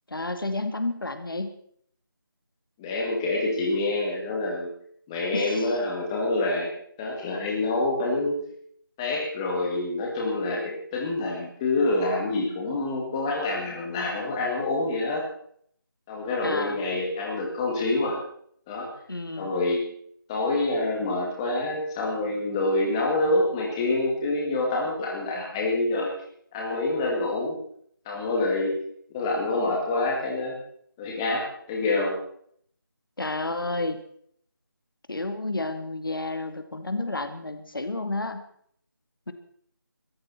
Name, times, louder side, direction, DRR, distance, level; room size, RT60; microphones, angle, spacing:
voice 1, 0.1-1.6 5.3-5.8 16.4-16.8 19.1-19.5 33.2-34.0 35.1-38.5 39.3-39.4, left 2 dB, 70° left, 8 dB, 2.3 m, -31 dB
voice 2, 2.8-4.7 5.1-6.7 7.0-8.4 9.0-15.2 16.1-18.2 18.7-18.9 19.4-19.8 20.3-26.1 26.5-27.6 28.1-28.8 29.1-30.6 31.0-31.4 31.7-32.2, left 2 dB, 10° left, -1 dB, 2.2 m, -26 dB
22.5 x 14.0 x 4.3 m, 0.63 s
figure-of-eight pair, 170°, 12 cm